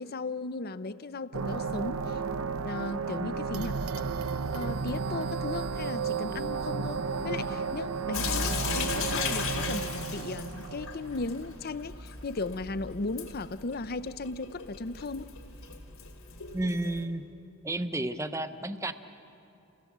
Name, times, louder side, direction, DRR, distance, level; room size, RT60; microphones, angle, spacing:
voice 1, 0.0-2.2 2.6-3.8 4.5-15.3, left 3 dB, 45° left, 15 dB, 0.6 m, -36 dB
sound 1, 1.3-11.9, right 5 dB, 80° right, 0.7 m, -33 dB
Sink (filling or washing) / Drip, 8.1-17.0, left 4 dB, 75° left, 3.0 m, -36 dB
voice 2, 16.5-17.2 17.6-18.9, right 1 dB, 15° right, 10 dB, 0.7 m, -31 dB
29.5 x 17.5 x 7.4 m, 2.8 s
head